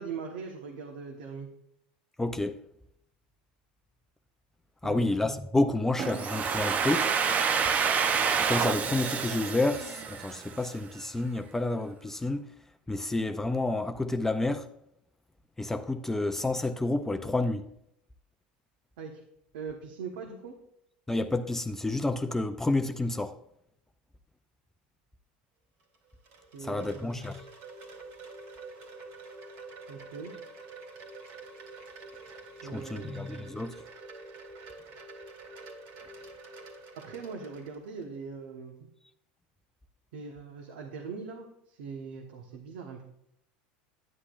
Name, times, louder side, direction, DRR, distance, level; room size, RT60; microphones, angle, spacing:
voice 1, 0.0-1.5 4.8-5.0 19.0-19.2 19.5-20.5 26.5-27.1 29.9-30.3 32.6-33.2 36.9-38.9 40.1-43.0, right 5 dB, 80° right, 1.2 m, -41 dB
voice 2, 2.2-2.6 4.8-7.1 8.4-12.5 12.9-14.7 15.6-17.6 21.1-23.3 26.6-27.4 32.7-33.8, left 2 dB, 10° left, 0.5 m, -29 dB
Domestic sounds home sounds, 6.0-10.7, right 6 dB, 35° right, 0.6 m, -28 dB
Wind chime, 25.8-38.1, right 3 dB, 65° right, 2.5 m, -47 dB
9.9 x 9.7 x 2.5 m
supercardioid pair, 110°, 5 cm